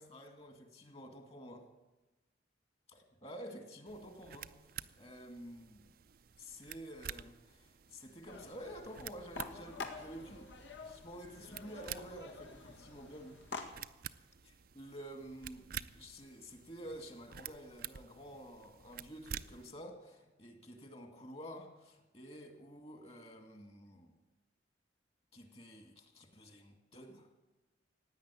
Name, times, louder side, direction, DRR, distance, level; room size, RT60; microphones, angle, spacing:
voice 1, 0.0-1.7 2.9-5.9 6.4-10.5 10.8-13.4 14.4-24.1 25.3-27.3, equal, 35° left, 5 dB, 2.3 m, -50 dB
sound 1, 3.9-19.7, right 10 dB, 50° right, 0.5 m, -50 dB
sound 2, 8.3-13.7, left 4 dB, 80° left, 1.8 m, -48 dB
16.0 x 9.8 x 8.5 m, 1.1 s
head